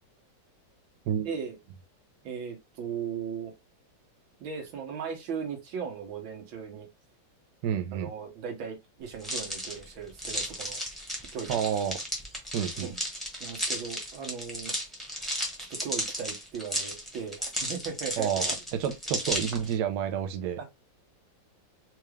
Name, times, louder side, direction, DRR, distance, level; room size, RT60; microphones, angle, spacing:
voice 1, 1.2-1.6 2.2-3.5 4.4-6.9 7.9-10.8 11.3-11.5 12.8-13.0 13.4-14.8 15.1-15.4 15.7-18.3 20.6-20.7, right 6 dB, 90° right, 1.9 m, -37 dB
voice 2, 7.6-8.1 11.5-12.0 12.5-12.9 18.2-18.5 18.8-20.6, right 8 dB, 65° right, 1.2 m, -29 dB
sound 1, 9.2-19.7, equal, ahead, 0.9 m, -34 dB
4.4 x 2.4 x 3.2 m
omnidirectional pair, 2.1 m